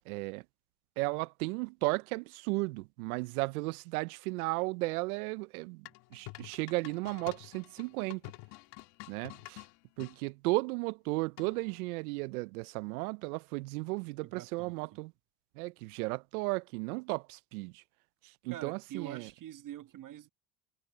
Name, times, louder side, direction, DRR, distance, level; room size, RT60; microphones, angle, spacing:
voice 1, 0.1-0.4 1.0-8.2 9.1-9.6 10.0-15.1 15.6-17.8 18.2-19.3, right 25 dB, 85° right, 0.5 m, -35 dB
sound 1, 5.9-10.2 11.4-11.8, left 22 dB, 70° left, 1.9 m, -49 dB
voice 2, 14.2-15.0 18.5-20.3, right 12 dB, 45° right, 1.3 m, -45 dB
supercardioid pair, 90°, 43 cm